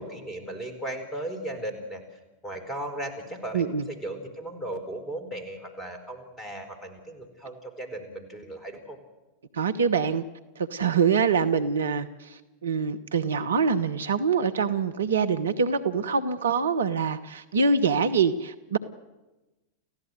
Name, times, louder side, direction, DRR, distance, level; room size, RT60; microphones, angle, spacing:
voice 1, 0.0-2.0 2.4-9.0, right 1 dB, 15° left, 7 dB, 4.6 m, -36 dB
voice 2, 3.5-3.9 9.5-10.2 10.6-18.8, right 5 dB, 65° right, 10 dB, 1.0 m, -25 dB
29.0 x 15.5 x 7.9 m, 1.1 s
figure-of-eight pair, 90°, 0 cm